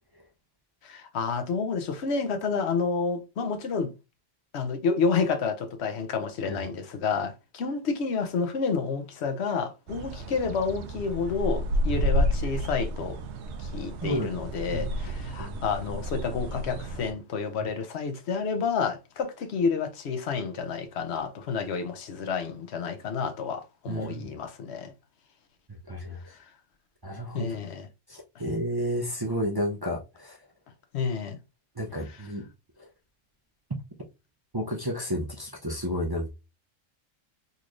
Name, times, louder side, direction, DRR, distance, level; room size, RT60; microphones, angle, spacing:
voice 1, 0.8-3.9 4.5-13.2 13.6-24.9 27.3-27.9 30.9-31.4, left 5 dB, 65° left, 0.9 m, -29 dB
sound 1, 9.9-17.1, equal, 70° right, 0.8 m, -30 dB
voice 2, 23.9-24.3 25.9-26.3 27.0-27.6 28.1-30.4 31.8-32.5 32.8-32.9 34.5-36.3, equal, 35° right, 0.4 m, -31 dB
4.0 x 3.1 x 2.5 m
omnidirectional pair, 1.3 m